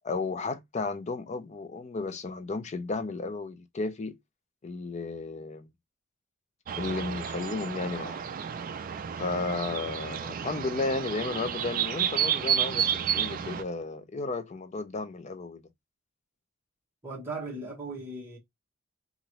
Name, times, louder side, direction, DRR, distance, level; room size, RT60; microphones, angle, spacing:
voice 1, 0.0-4.2 4.6-5.7 6.8-8.3 9.1-15.7, left 3 dB, 35° left, 0.4 m, -33 dB
sound 1, 6.7-13.6, right 9 dB, 40° right, 0.3 m, -31 dB
voice 2, 17.0-18.4, right 2 dB, 10° right, 1.2 m, -37 dB
2.9 x 2.5 x 2.9 m
head